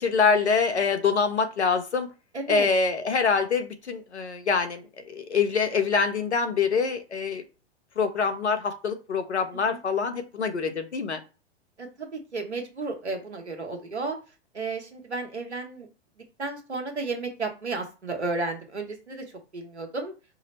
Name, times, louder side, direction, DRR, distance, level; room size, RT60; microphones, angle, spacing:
voice 1, 0.0-2.1 2.5-7.4 8.0-11.2, left 5 dB, 85° left, 7 dB, 0.8 m, -25 dB
voice 2, 2.3-2.7 9.5-9.8 11.8-14.2 14.5-15.9 16.4-19.3 19.5-20.1, right 3 dB, 90° right, 3 dB, 1.1 m, -33 dB
4.9 x 2.0 x 4.1 m, 0.31 s
figure-of-eight pair, 105°, 33 cm